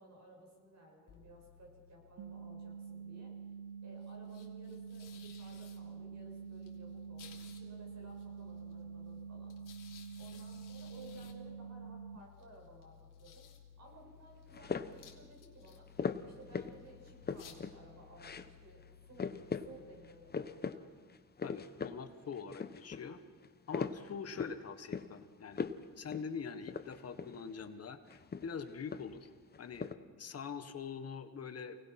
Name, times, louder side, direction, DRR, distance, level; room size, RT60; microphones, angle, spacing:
voice 1, 0.0-3.3 3.8-9.5 10.2-13.4 13.8-15.9 16.2-19.4 19.6-20.9, right 1 dB, 60° right, 0 dB, 7.8 m, -57 dB
sound 1, 1.1-21.0, left 8 dB, 85° left, 3.2 m, -59 dB
sound 2, 2.2-12.2, right 6 dB, 80° right, 0.9 m, -47 dB
sound 3, 14.5-15.1 16.0-16.8 17.1-17.8 18.2-18.5 18.8-18.9 19.2-19.7 20.0-20.8 21.1-22.0 22.3-23.0 23.4-24.6 24.9-25.2 25.5-25.8 26.1-26.3 26.6-27.4 28.1-29.3 29.5-29.9, left 5 dB, 30° left, 0.9 m, -39 dB
voice 2, 21.4-23.2 23.7-25.7 26.0-29.3 29.6-29.9 30.2-31.8, left 6 dB, 50° left, 9 dB, 1.4 m, -44 dB
29.0 x 19.0 x 6.0 m, 1.5 s
cardioid pair, 125°, 32 cm